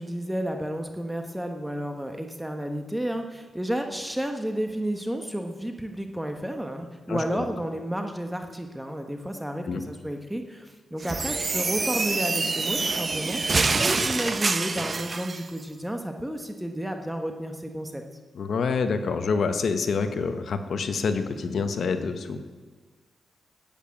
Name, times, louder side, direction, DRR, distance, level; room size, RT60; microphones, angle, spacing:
voice 1, 0.0-18.0, equal, 5° right, 5 dB, 1.2 m, -31 dB
voice 2, 7.1-7.4 9.6-9.8 18.3-22.4, left 5 dB, 70° left, 9 dB, 1.0 m, -27 dB
sound 1, 11.0-15.4, right 4 dB, 40° right, 0.8 m, -26 dB
10.5 x 8.9 x 8.6 m, 1.4 s
cardioid pair, 85°, 0 cm